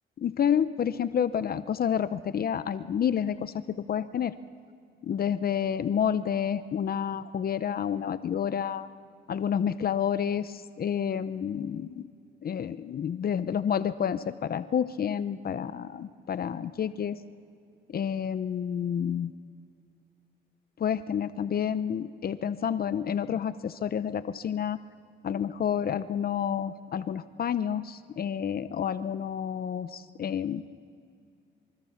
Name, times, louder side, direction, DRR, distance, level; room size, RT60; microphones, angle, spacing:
voice 1, 0.2-4.3 5.0-8.9 9.3-12.0 12.4-17.2 17.9-19.3 20.8-24.8 25.2-30.6, left 8 dB, 50° left, 13 dB, 0.7 m, -29 dB
26.5 x 25.0 x 5.8 m, 2.3 s
cardioid pair, 90°, 20 cm